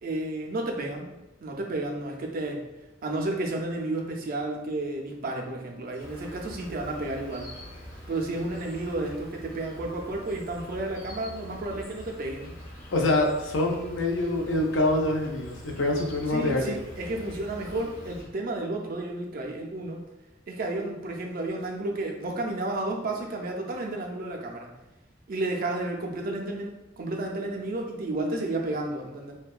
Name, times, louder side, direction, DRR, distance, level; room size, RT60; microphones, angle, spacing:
voice 1, 0.0-1.1 1.4-2.6 3.0-7.5 8.1-12.6 16.3-20.0 20.5-24.7 25.3-29.3, right 2 dB, 50° right, 1 dB, 0.4 m, -32 dB
Insect, 6.0-18.2, equal, 40° left, 0.8 m, -44 dB
voice 2, 12.9-16.8, left 2 dB, 75° left, 1 dB, 0.5 m, -25 dB
2.6 x 2.2 x 2.3 m, 0.98 s
head